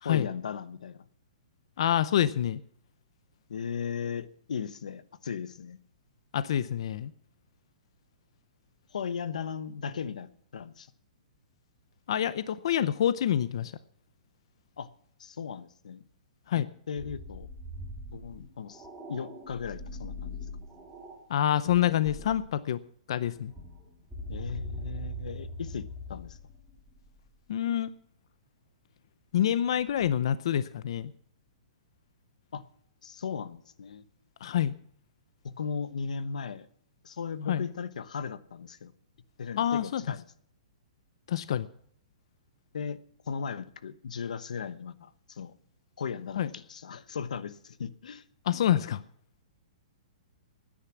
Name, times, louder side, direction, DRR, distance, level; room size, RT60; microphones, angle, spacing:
voice 1, 0.0-1.0 3.5-5.8 8.9-10.9 14.8-14.9 15.2-16.0 16.5-17.5 18.1-20.4 24.3-26.4 32.5-32.6 33.0-34.0 35.4-36.7 37.0-38.9 39.4-40.2 42.7-43.0 43.2-45.5 46.0-48.2, left 6 dB, 90° left, 15 dB, 1.0 m, -37 dB
voice 2, 1.8-2.6 6.3-7.1 12.1-13.7 16.5-16.7 21.3-22.8 23.1-23.5 27.5-27.9 29.3-31.1 34.4-34.7 37.5-37.6 39.6-40.0 41.3-41.7 46.4-46.5 48.5-49.0, left 10 dB, 45° left, 16 dB, 0.6 m, -27 dB
sound 1, 17.0-21.2 21.7-22.5 23.2-27.4 29.6-30.1, equal, 5° right, 2.3 m, -42 dB
16.0 x 10.0 x 5.9 m, 0.62 s
hypercardioid pair, 180°, 4 cm